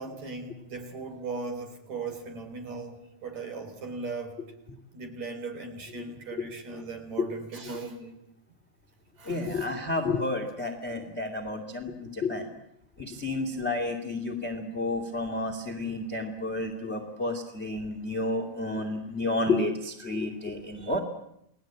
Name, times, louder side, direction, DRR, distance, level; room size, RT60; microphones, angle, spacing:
voice 1, 0.0-4.4 4.9-8.2 9.2-9.7, right 4 dB, 50° right, 5 dB, 4.7 m, -38 dB
voice 2, 9.3-12.5 13.0-21.0, left 2 dB, 20° left, 5 dB, 2.2 m, -31 dB
29.5 x 20.0 x 8.9 m, 0.77 s
omnidirectional pair, 4.4 m